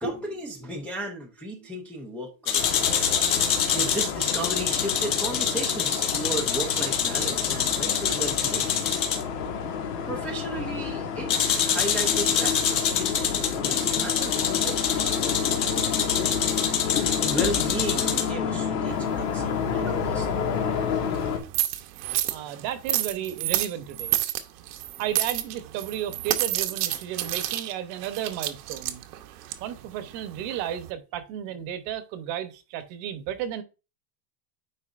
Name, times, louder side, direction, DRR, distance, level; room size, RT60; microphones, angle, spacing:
voice 1, 0.0-2.9 3.7-8.8 10.1-16.1 17.2-20.7, right 1 dB, 5° left, 0.5 m, -35 dB
sound 1, 2.5-9.2 11.3-18.3, left 8 dB, 50° left, 1.7 m, -26 dB
sound 2, 2.6-21.4, left 7 dB, 80° left, 1.7 m, -30 dB
sound 3, 18.9-30.9, right 14 dB, 75° right, 1.0 m, -31 dB
voice 2, 22.3-24.2 25.0-29.0 29.6-33.6, right 10 dB, 50° right, 1.0 m, -33 dB
10.0 x 4.0 x 2.5 m
supercardioid pair, 155°, 47 cm